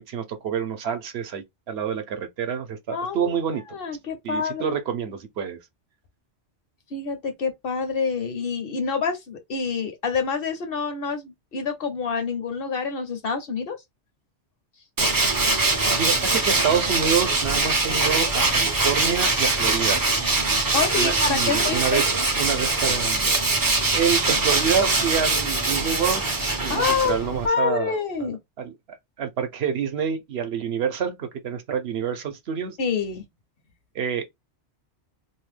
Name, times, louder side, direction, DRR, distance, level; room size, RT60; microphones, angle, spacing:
voice 1, 0.0-3.8 4.2-5.6 16.0-20.0 21.0-22.0 22.4-23.3 23.7-26.2 26.6-27.9 28.6-32.8 33.9-34.2, right 7 dB, 65° right, 0.9 m, -27 dB
voice 2, 2.9-4.8 6.9-13.8 20.7-22.0 26.7-27.1 27.4-28.4 32.8-33.2, left 5 dB, 60° left, 0.9 m, -27 dB
Tools, 15.0-27.5, right 3 dB, 30° right, 0.4 m, -22 dB
2.7 x 2.1 x 3.2 m
omnidirectional pair, 1.2 m